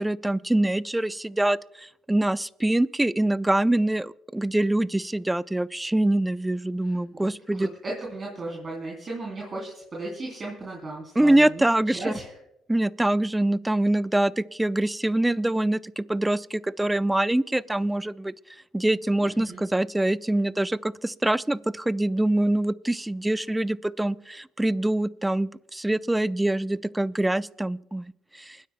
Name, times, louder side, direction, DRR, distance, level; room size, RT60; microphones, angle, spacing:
voice 1, 0.0-7.7 11.2-12.1 12.7-18.3 18.7-28.1 28.4-28.6, right 1 dB, 10° right, 18 dB, 0.5 m, -24 dB
voice 2, 6.8-7.3 7.5-11.6 11.9-12.4 19.2-19.6, right 2 dB, 35° right, -3 dB, 3.3 m, -36 dB
28.5 x 10.0 x 2.2 m, 0.82 s
hypercardioid pair, 60°, 0 cm